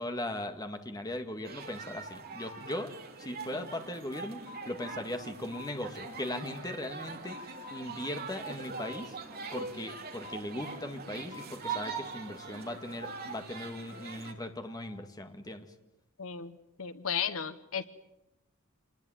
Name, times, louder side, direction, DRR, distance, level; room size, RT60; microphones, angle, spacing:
voice 1, 0.0-2.9 3.2-7.4 7.7-9.2 9.5-15.7, left 1 dB, 20° left, 6 dB, 2.0 m, -38 dB
sound 1, 1.4-14.3, right 5 dB, 45° right, 2.9 m, -42 dB
sound 2, 3.7-6.3 6.6-9.1 9.5-12.1 12.4-15.0, left 6 dB, 90° left, 4.7 m, -51 dB
voice 2, 16.2-17.9, left 7 dB, 70° left, 13 dB, 1.0 m, -35 dB
26.5 x 20.0 x 9.4 m, 0.92 s
head